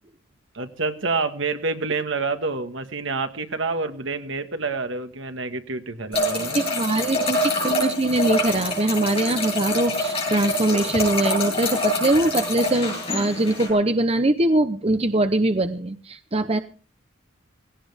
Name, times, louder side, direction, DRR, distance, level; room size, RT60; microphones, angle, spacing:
voice 1, 0.5-6.6, right 3 dB, 65° right, 8 dB, 1.5 m, -28 dB
sound 1, 6.1-13.7, left 1 dB, 30° left, 7.3 m, -25 dB
voice 2, 6.5-16.6, right 2 dB, 30° right, 9 dB, 0.8 m, -22 dB
18.0 x 17.5 x 3.5 m, 0.38 s
head